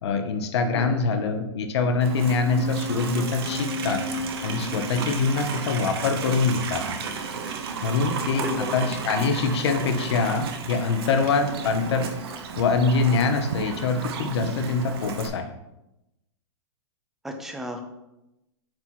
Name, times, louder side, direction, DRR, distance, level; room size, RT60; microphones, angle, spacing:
voice 1, 0.0-4.0 4.4-6.8 7.8-15.5, left 4 dB, 65° left, 6 dB, 0.9 m, -24 dB
Livestock farm animals working animals, 2.0-15.3, right 5 dB, 55° right, 0.8 m, -33 dB
sound 1, 2.2-7.2, left 2 dB, 25° left, 1.1 m, -36 dB
voice 2, 8.3-8.7 17.2-17.9, equal, ahead, 3 dB, 0.4 m, -32 dB
7.6 x 2.9 x 4.6 m, 0.91 s
supercardioid pair, 165°, 15 cm